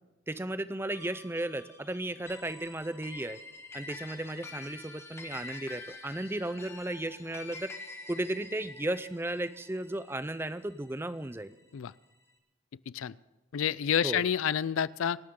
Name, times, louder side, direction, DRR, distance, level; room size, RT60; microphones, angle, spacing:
voice 1, 0.3-3.4 3.7-7.7 8.1-11.5 14.0-14.2, right 1 dB, 10° right, 14 dB, 0.5 m, -35 dB
sound 1, 0.9-11.5, left 3 dB, 15° left, 1.4 m, -47 dB
voice 2, 13.5-15.2, left 8 dB, 80° left, 20 dB, 0.4 m, -29 dB
26.5 x 12.5 x 3.8 m, 1.1 s
head